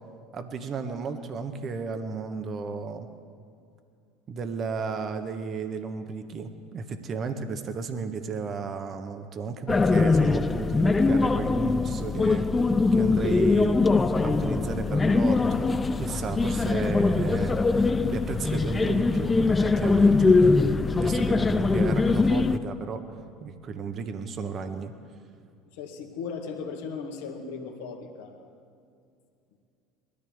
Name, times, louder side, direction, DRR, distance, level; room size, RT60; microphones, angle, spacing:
voice 1, 0.3-3.1 4.3-12.4 12.9-13.8 14.2-15.7 16.0-17.5 18.1-20.4 20.9-23.0 23.4-24.9, right 5 dB, 40° right, 8 dB, 1.3 m, -33 dB
sound 1, 9.7-22.6, left 3 dB, 20° left, 0.5 m, -22 dB
voice 2, 25.7-28.5, left 5 dB, 75° left, 1 dB, 2.0 m, -37 dB
21.5 x 13.5 x 3.6 m, 2.4 s
hypercardioid pair, 75°, 0 cm